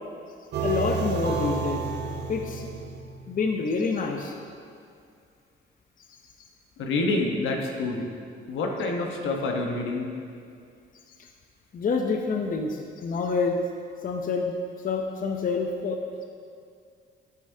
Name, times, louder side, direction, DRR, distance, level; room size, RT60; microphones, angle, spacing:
sound 1, 0.5-3.7, right 4 dB, 60° right, 1.0 m, -30 dB
voice 1, 0.6-1.8 2.3-2.7 3.3-4.3 11.7-13.6 14.0-14.5 14.8-16.0, left 4 dB, 45° left, 3 dB, 0.7 m, -27 dB
voice 2, 6.8-8.1 8.5-10.1, left 2 dB, 80° left, 1 dB, 1.2 m, -27 dB
10.0 x 8.4 x 2.8 m, 2.3 s
cardioid pair, 90°, 20 cm